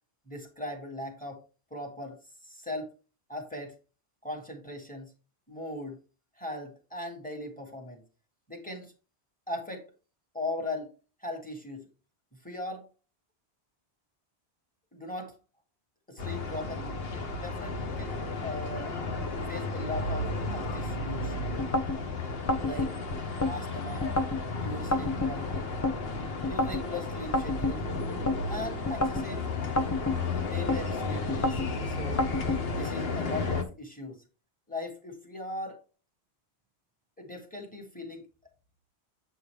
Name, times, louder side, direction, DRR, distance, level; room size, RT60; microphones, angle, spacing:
voice 1, 0.3-1.4 1.7-2.2 2.4-2.9 3.3-3.8 4.2-5.1 5.5-6.0 6.4-8.0 8.5-8.9 9.5-9.8 10.3-10.9 11.2-11.9 12.4-12.9 14.9-15.3 16.1-17.0 17.4-19.0 19.5-21.3 22.6-23.0 23.5-24.1 24.6-25.7 26.5-27.8 28.5-29.7 30.4-31.6 31.9-32.3 32.7-34.2 34.7-35.8 37.2-38.3, left 1 dB, 5° left, 1.9 m, -39 dB
sound 1, 16.2-33.6, left 3 dB, 60° left, 1.1 m, -33 dB
sound 2, 21.6-22.0 22.5-23.5 24.0-24.4 24.9-26.0 26.4-26.8 27.3-28.4 28.9-29.3 29.8-30.8 31.3-31.7 32.2-32.6, left 2 dB, 25° left, 0.4 m, -29 dB
8.0 x 5.5 x 3.4 m
omnidirectional pair, 1.1 m